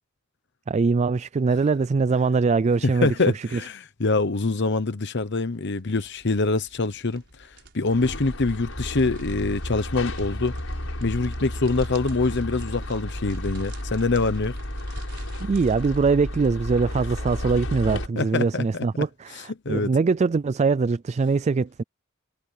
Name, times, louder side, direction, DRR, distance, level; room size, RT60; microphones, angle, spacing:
voice 1, 0.7-3.1 3.3-3.6 15.4-21.8, right 4 dB, 35° right, 0.3 m, -22 dB
voice 2, 3.0-10.5 11.0-14.6 18.2-18.8 19.3-19.9, left 3 dB, 60° left, 1.0 m, -25 dB
sound 1, 5.5-16.2, right 1 dB, 60° right, 5.0 m, -45 dB
sound 2, 7.9-18.1, left 1 dB, 85° left, 5.5 m, -33 dB
head